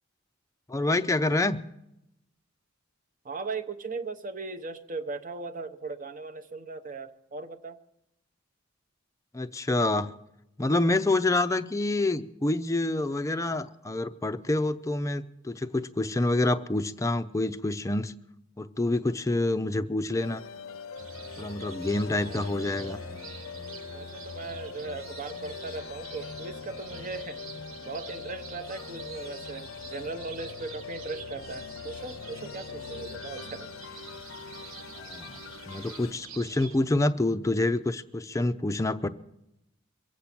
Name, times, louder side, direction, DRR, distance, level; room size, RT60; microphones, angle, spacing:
voice 1, 0.7-1.6 9.3-10.1 10.6-18.1 18.6-20.4 21.4-23.0 35.0-35.4 35.7-39.1, left 2 dB, 15° left, 10 dB, 0.5 m, -27 dB
voice 2, 3.2-7.8 22.2-23.2 23.9-27.4 27.8-33.7, right 4 dB, 40° right, 8 dB, 0.8 m, -38 dB
sound 1, 20.2-36.1, left 5 dB, 65° left, 0.6 m, -42 dB
sound 2, 21.0-36.8, right 4 dB, 70° right, 1.3 m, -46 dB
23.5 x 8.4 x 5.9 m, 0.85 s
head